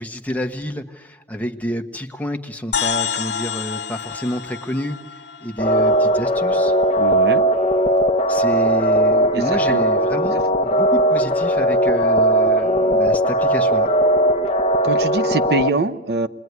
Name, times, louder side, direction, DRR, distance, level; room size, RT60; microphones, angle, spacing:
voice 1, 0.0-6.7 8.3-13.9, equal, 10° left, 4 dB, 1.3 m, -29 dB
sound 1, 2.7-6.5, left 7 dB, 75° left, 1.1 m, -28 dB
sound 2, 5.6-15.7, right 1 dB, 35° left, 0.9 m, -18 dB
voice 2, 7.0-7.4 9.3-9.8 14.8-16.3, right 3 dB, 65° right, 12 dB, 0.8 m, -24 dB
28.5 x 21.5 x 9.6 m, 1.2 s
head